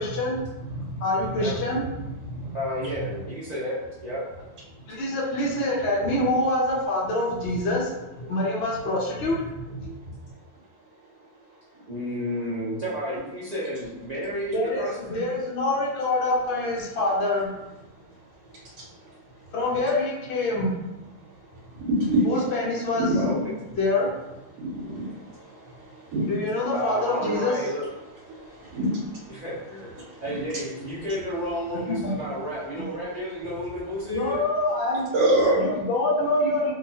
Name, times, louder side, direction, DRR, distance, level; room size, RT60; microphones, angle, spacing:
voice 1, 0.0-2.5 4.9-7.9 8.2-10.1 14.5-17.6 19.5-20.7 22.3-23.1 23.8-24.1 26.2-27.6 31.9-32.1 34.1-35.1 35.6-36.7, left 2 dB, 70° left, -4 dB, 0.6 m, -26 dB
voice 2, 2.5-4.2 8.2-8.3 8.9-9.0 9.8-9.9 11.9-15.3 23.1-23.3 24.8-24.9 26.7-27.9 29.3-29.9 30.2-34.4, equal, 65° right, -10 dB, 0.4 m, -32 dB
voice 3, 21.9-22.2 22.9-23.4 24.6-25.1 26.1-26.3 28.6-29.0 30.2-30.6 35.1-35.6, right 1 dB, 80° right, -4 dB, 1.1 m, -23 dB
2.9 x 2.2 x 2.7 m, 1.0 s
omnidirectional pair, 1.7 m